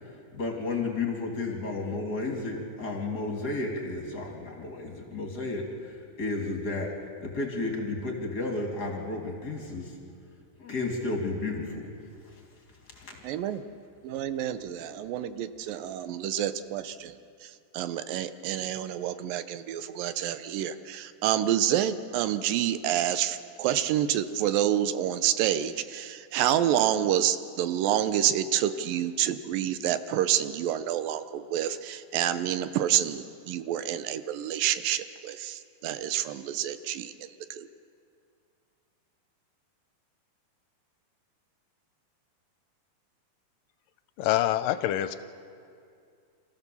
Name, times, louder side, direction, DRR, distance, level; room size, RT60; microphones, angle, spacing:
voice 1, 0.3-6.9 7.2-10.0 10.6-11.8 12.2-12.4 12.9-13.2 14.2-14.7, left 3 dB, 30° left, 0 dB, 2.7 m, -33 dB
voice 2, 13.2-13.6 14.0-17.1 17.4-37.7, right 11 dB, 80° right, 11 dB, 2.4 m, -28 dB
voice 3, 44.2-45.2, left 13 dB, 80° left, 12 dB, 2.2 m, -25 dB
27.5 x 14.5 x 7.0 m, 2.4 s
omnidirectional pair, 4.0 m